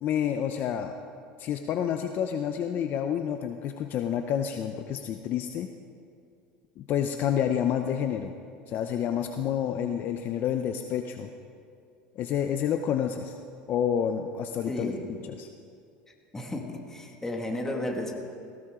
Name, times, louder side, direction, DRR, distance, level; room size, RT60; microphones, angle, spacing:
voice 1, 0.0-0.9 1.4-5.7 6.8-8.3 8.7-11.3 12.2-13.4 13.7-14.9 15.2-15.5, left 9 dB, 45° left, 6 dB, 0.7 m, -29 dB
voice 2, 14.7-15.0 16.3-18.1, left 1 dB, 10° left, 1 dB, 2.0 m, -33 dB
18.5 x 16.0 x 3.8 m, 2.4 s
supercardioid pair, 120°, 4 cm